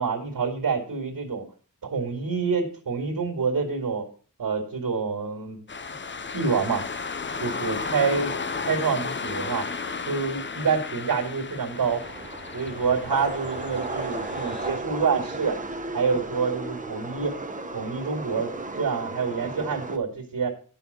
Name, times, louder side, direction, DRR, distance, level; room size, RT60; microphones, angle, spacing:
voice 1, 0.0-1.4 1.8-4.1 4.4-5.6 6.3-6.9 7.4-8.3 8.7-9.7 10.0-12.0 12.5-15.6 15.9-17.4 17.7-20.5, right 5 dB, 70° right, 2 dB, 2.3 m, -27 dB
sound 1, 5.7-14.7, left 4 dB, 35° left, 0.6 m, -34 dB
sound 2, 11.8-20.0, right 2 dB, 25° right, 1.1 m, -34 dB
10.5 x 5.7 x 6.8 m, 0.42 s
wide cardioid pair, 105°, 34 cm